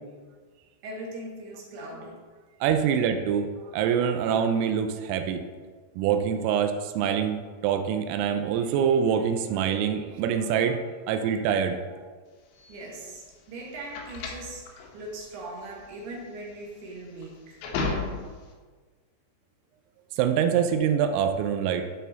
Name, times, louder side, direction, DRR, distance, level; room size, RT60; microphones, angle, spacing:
voice 1, 0.8-2.2 12.7-17.6, right 1 dB, 65° right, -2 dB, 3.0 m, -40 dB
voice 2, 2.6-5.4 6.0-12.0 20.2-21.9, right 8 dB, 90° right, 6 dB, 3.3 m, -25 dB
sound 1, 12.5-18.5, left 3 dB, 75° left, 2.7 m, -35 dB
12.0 x 4.2 x 4.0 m, 1.5 s
omnidirectional pair, 5.7 m